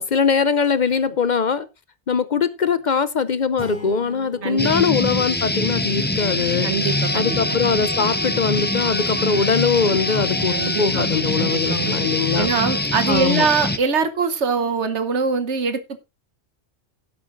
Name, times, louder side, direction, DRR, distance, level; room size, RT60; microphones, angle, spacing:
voice 1, 0.0-1.7 2.1-6.7 7.1-12.5 13.1-13.5, left 6 dB, 50° left, 0.7 m, -21 dB
sound 1, 3.6-6.4, equal, 5° right, 3.6 m, -40 dB
sound 2, 4.6-13.8, left 1 dB, 10° left, 0.7 m, -24 dB
voice 2, 6.6-7.4 10.5-11.1 11.4-11.9 12.3-16.0, right 5 dB, 80° right, 1.4 m, -23 dB
Wind instrument woodwind instrument, 6.8-12.9, left 1 dB, 40° right, 4.1 m, -35 dB
16.5 x 8.4 x 2.6 m
omnidirectional pair, 1.1 m